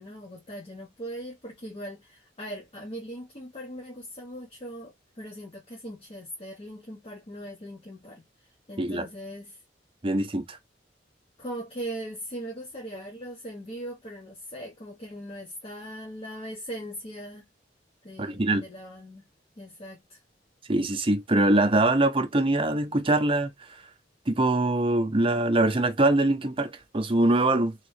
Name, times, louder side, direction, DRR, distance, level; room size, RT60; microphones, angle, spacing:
voice 1, 0.0-8.2 8.7-9.6 11.4-17.5 18.0-19.2 19.6-20.2, right 1 dB, 35° left, 0.9 m, -40 dB
voice 2, 10.0-10.6 18.2-18.6 20.7-23.5 24.3-27.7, right 2 dB, 30° right, 0.8 m, -23 dB
3.2 x 3.0 x 3.1 m
head